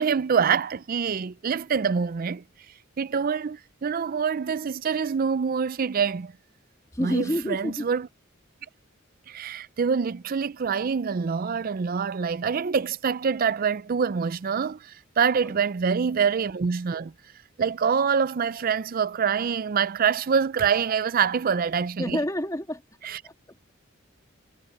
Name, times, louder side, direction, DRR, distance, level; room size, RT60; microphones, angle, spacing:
voice 1, 0.0-2.4 3.0-6.3 7.0-8.1 9.3-17.1 17.6-22.2 23.0-23.2, right 6 dB, 45° right, 0.4 m, -25 dB
voice 2, 6.9-7.9 15.4-15.6 22.0-22.8 23.2-23.7, left 1 dB, 15° left, 2.8 m, -29 dB
head